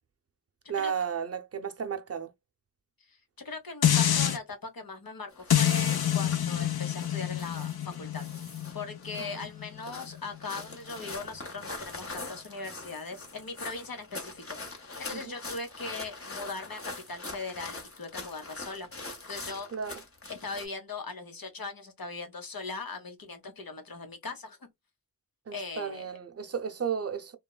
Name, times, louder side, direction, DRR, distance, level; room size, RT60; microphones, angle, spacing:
voice 1, 0.7-2.3 9.2-9.5 15.1-15.3 19.7-20.0 25.5-27.4, right 7 dB, 45° right, 0.5 m, -34 dB
voice 2, 3.4-8.2 8.7-18.9 19.3-19.7 20.3-24.6 25.5-26.1, left 3 dB, 70° left, 0.9 m, -40 dB
sound 1, 3.8-4.4 5.5-10.6 11.1-11.2, left 10 dB, 85° left, 0.5 m, -28 dB
sound 2, 5.3-20.7, left 3 dB, 40° left, 0.9 m, -43 dB
3.1 x 2.2 x 2.2 m
wide cardioid pair, 55°, 36 cm